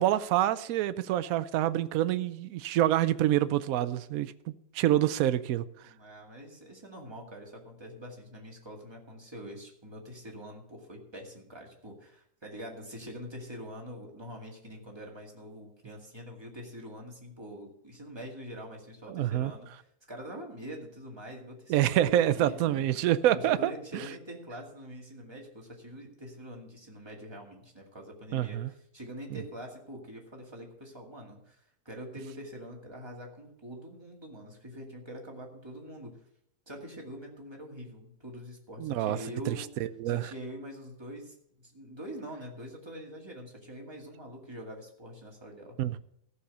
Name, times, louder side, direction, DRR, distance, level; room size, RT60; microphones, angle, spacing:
voice 1, 0.0-4.3 4.7-5.7 19.1-19.5 21.7-24.0 28.3-28.7 29.3-29.4 38.8-39.2 39.5-40.2 45.8-46.0, right 12 dB, 70° right, 1.0 m, -27 dB
voice 2, 5.8-22.9 23.3-36.2 36.7-39.7 40.1-45.8, equal, 15° right, 2.1 m, -44 dB
14.5 x 6.3 x 6.8 m
omnidirectional pair, 1.7 m